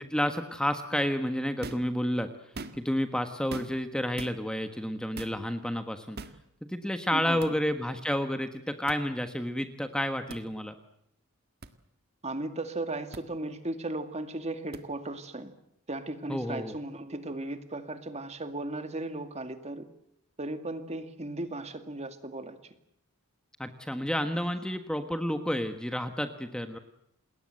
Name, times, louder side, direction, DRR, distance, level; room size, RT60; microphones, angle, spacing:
voice 1, 0.0-2.3 2.7-6.2 6.7-10.7 16.3-16.7 23.6-26.8, equal, 5° left, 7 dB, 1.3 m, -30 dB
sound 1, 1.6-1.9 2.4-3.0 3.5-3.9 4.2-4.4 5.2-5.4 6.2-6.4 7.4-7.5 8.9-9.0 10.3-10.4 11.6-11.7 13.1-13.2 14.7-14.8, right 3 dB, 45° right, 1.7 m, -41 dB
voice 2, 7.1-7.6 12.2-15.6 15.9-19.9 20.4-22.8, right 2 dB, 30° right, 8 dB, 2.1 m, -36 dB
28.5 x 20.5 x 7.8 m, 0.77 s
head